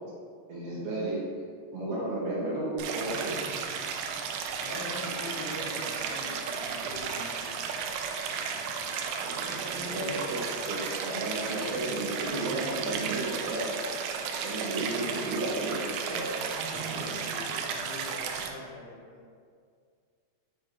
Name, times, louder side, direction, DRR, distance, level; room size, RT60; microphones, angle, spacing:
voice 1, 0.5-1.2 1.7-3.4 9.2-13.8 14.4-16.3, right 1 dB, 65° right, -7 dB, 2.5 m, -33 dB
Stream, 2.8-18.5, right 6 dB, 85° right, 2.1 m, -34 dB
voice 2, 4.6-7.6 16.7-19.2, left 1 dB, 85° left, -11 dB, 3.9 m, -42 dB
8.5 x 3.2 x 4.3 m, 2.2 s
omnidirectional pair, 4.8 m